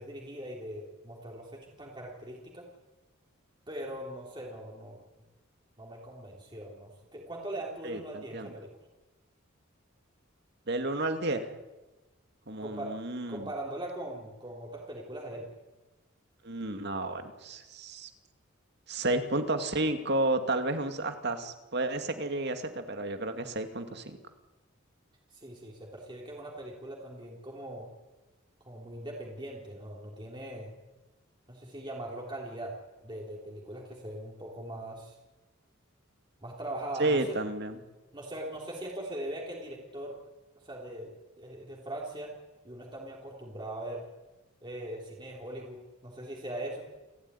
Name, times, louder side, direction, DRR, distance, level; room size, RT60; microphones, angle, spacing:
voice 1, 0.0-2.6 3.7-5.0 5.8-8.7 12.6-12.9 13.3-15.5 25.3-27.9 28.7-30.8 31.5-32.8 33.0-35.2 36.4-37.4 38.1-40.2 40.6-42.4 42.6-44.1 44.6-46.8, right 1 dB, 25° right, -1 dB, 3.6 m, -40 dB
voice 2, 7.8-8.5 10.7-11.5 12.5-13.5 16.4-18.1 18.9-24.2 37.0-37.8, right 2 dB, 55° right, 7 dB, 2.5 m, -31 dB
29.0 x 14.5 x 9.9 m, 1.1 s
head